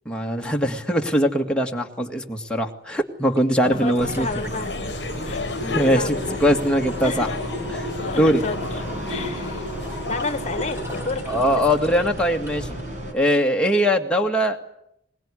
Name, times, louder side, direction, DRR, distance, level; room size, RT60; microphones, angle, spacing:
voice 1, 0.1-4.3 5.7-7.3 7.7-8.4 11.3-12.7 13.1-14.7, equal, 5° left, 1 dB, 2.0 m, -21 dB
sound 1, 3.4-3.5 3.8-12.8 13.2-13.3, left 1 dB, 15° right, 5.5 m, -35 dB
sound 2, 3.6-11.0, left 4 dB, 75° left, 1.0 m, -34 dB
voice 2, 3.7-4.8 5.2-6.4 7.0-7.4 8.0-9.7 10.1-10.8 11.0-11.6, left 3 dB, 40° left, 10 dB, 1.5 m, -31 dB
sound 3, 4.0-13.1, right 1 dB, 45° right, 5.4 m, -34 dB
22.5 x 20.5 x 9.9 m, 0.75 s
head